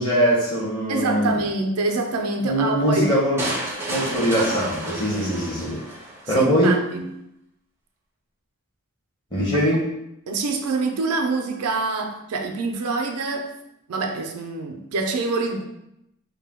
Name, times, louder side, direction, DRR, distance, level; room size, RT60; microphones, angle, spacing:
voice 1, 0.0-1.4 2.4-3.4 3.9-5.8 6.3-6.7 9.3-9.8, equal, 20° left, -6 dB, 0.8 m, -21 dB
voice 2, 0.9-3.1 6.3-7.2 10.3-13.5 13.9-15.6, right 3 dB, 90° right, 3 dB, 0.4 m, -26 dB
sound 1, 3.4-6.4, right 1 dB, 10° right, 0.4 m, -31 dB
2.6 x 2.1 x 3.4 m, 0.84 s
head